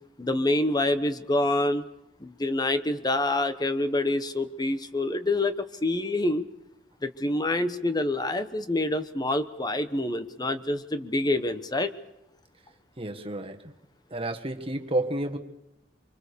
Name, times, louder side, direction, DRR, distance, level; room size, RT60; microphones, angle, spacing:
voice 1, 0.2-1.8 2.2-5.5 5.8-6.4 7.0-11.9, left 2 dB, 20° left, 10 dB, 1.1 m, -26 dB
voice 2, 13.0-13.7 14.1-15.4, right 1 dB, 30° right, 5 dB, 1.7 m, -30 dB
24.5 x 24.5 x 6.9 m, 0.86 s
head